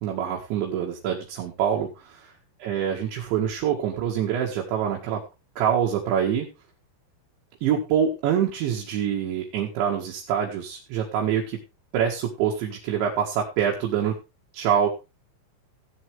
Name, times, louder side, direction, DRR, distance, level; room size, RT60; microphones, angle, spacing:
voice 1, 0.0-2.3 2.6-5.2 5.6-6.5 7.6-11.6 11.9-14.2 14.5-14.9, right 8 dB, 70° right, -2 dB, 4.0 m, -25 dB
17.0 x 8.2 x 3.4 m, 0.27 s
omnidirectional pair, 5.6 m